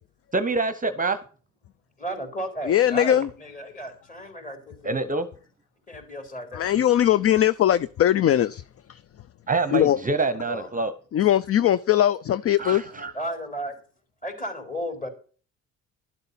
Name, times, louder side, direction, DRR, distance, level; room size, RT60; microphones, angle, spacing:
voice 1, 0.3-1.2 4.8-5.3 9.5-10.9 12.6-13.1, right 3 dB, 25° right, 0.8 m, -26 dB
voice 2, 2.0-5.1 5.9-6.8 10.5-10.7 11.2-11.3 13.1-13.8 14.2-15.1, right 1 dB, 25° left, 4.2 m, -34 dB
voice 3, 2.7-3.3 6.5-8.6 8.9-9.0 9.7-10.0 11.1-12.8, left 11 dB, 45° left, 0.5 m, -20 dB
12.0 x 8.0 x 5.6 m
supercardioid pair, 65°, 34 cm